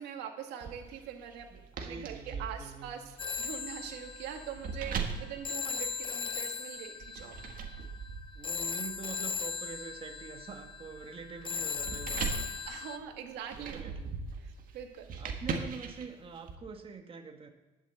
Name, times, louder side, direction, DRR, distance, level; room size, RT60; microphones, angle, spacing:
voice 1, 0.0-3.0 3.4-7.4 12.6-13.9 14.4-15.1, right 8 dB, 90° right, 4 dB, 2.0 m, -43 dB
sound 1, 0.6-6.4 7.0-16.5, right 5 dB, 55° right, 1.9 m, -41 dB
voice 2, 1.8-2.9 8.3-12.4 13.5-14.2 15.2-17.5, right 5 dB, 30° right, 4 dB, 1.4 m, -45 dB
Telephone, 3.2-13.0, left 5 dB, 30° left, 0.7 m, -38 dB
11.5 x 6.8 x 8.2 m, 1.2 s
cardioid pair, 110°, 17 cm